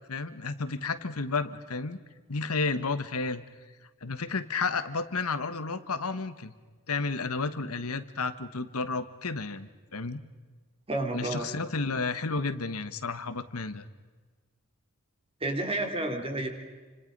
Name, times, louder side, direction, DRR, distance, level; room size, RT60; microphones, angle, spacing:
voice 1, 0.1-2.0 2.3-3.4 4.0-6.5 6.9-10.2 11.1-13.8, left 4 dB, 75° left, 11 dB, 1.3 m, -32 dB
voice 2, 10.9-11.5 15.4-16.5, right 2 dB, 25° right, 4 dB, 3.3 m, -30 dB
29.5 x 26.0 x 5.4 m, 1.4 s
head